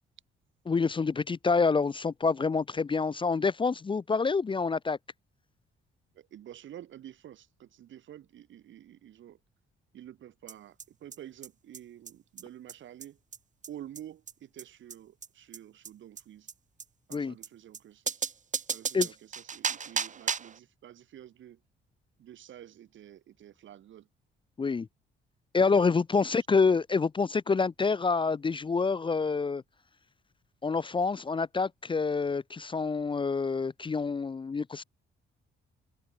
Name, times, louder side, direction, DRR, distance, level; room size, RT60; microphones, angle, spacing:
voice 1, 0.7-5.0 17.1-17.3 18.9-19.1 24.6-24.9 25.5-29.6 30.6-34.8, left 4 dB, 25° left, 0.6 m, -27 dB
voice 2, 6.1-9.4 9.9-13.2 13.7-16.5 17.1-18.2 18.7-21.6 22.2-24.1 26.2-26.6, right 11 dB, 70° right, 5.5 m, -49 dB
sound 1, 10.5-10.6 10.8-10.9 11.1-11.2 11.4-11.5 11.7-11.8 12.1-12.2 12.4-12.5 12.7-12.8 13.0-13.1 13.3-13.4 13.6-13.7 14.0-14.1 14.3-14.4 14.6-14.7 14.9-15.0 15.2-15.3 15.5-15.6 15.8-15.9 16.2-16.3 16.5-16.6 16.8-16.9 17.1-17.2 17.4-17.5 17.7-17.8 18.1-20.6, right 6 dB, 40° right, 1.6 m, -34 dB
cardioid pair, 90°, 20 cm